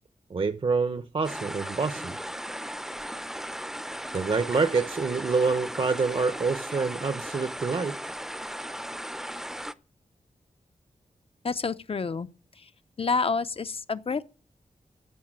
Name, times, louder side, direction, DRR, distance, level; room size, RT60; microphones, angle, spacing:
voice 1, 0.3-2.2 4.1-8.0, right 4 dB, 45° right, 0.8 m, -27 dB
sound 1, 1.2-9.7, equal, 5° right, 0.6 m, -37 dB
voice 2, 11.4-12.3 12.6-12.7 13.0-14.2, left 4 dB, 45° left, 0.7 m, -28 dB
15.0 x 5.8 x 8.9 m
wide cardioid pair, 115°, 13 cm